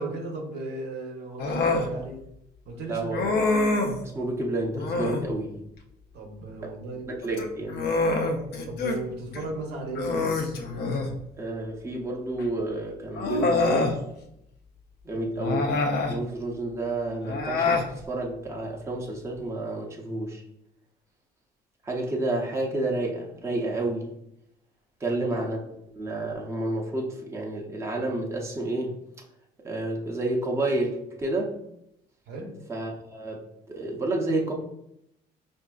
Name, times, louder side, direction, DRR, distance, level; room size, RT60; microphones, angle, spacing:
voice 1, 0.0-2.2 2.7-3.3 6.1-7.4 8.7-10.5 15.1-15.3 25.1-25.3 32.3-32.6, right 2 dB, 75° right, 2 dB, 0.8 m, -36 dB
Human voice, 1.4-1.9 3.1-4.0 4.7-5.3 7.2-9.0 9.3-9.5 9.9-11.2 12.4-12.5 13.1-14.0 15.4-16.2 17.2-17.9, left 3 dB, 65° left, 0.5 m, -26 dB
voice 2, 2.9-3.3 4.1-5.6 6.6-6.7 7.1-7.8 11.4-14.0 15.0-15.6 16.1-20.4 21.8-24.1 25.0-25.6 25.9-28.9 29.6-31.6 32.7-34.5, right 2 dB, 15° right, -1 dB, 0.7 m, -30 dB
4.7 x 2.6 x 2.3 m, 0.79 s
cardioid pair, 110°, 17 cm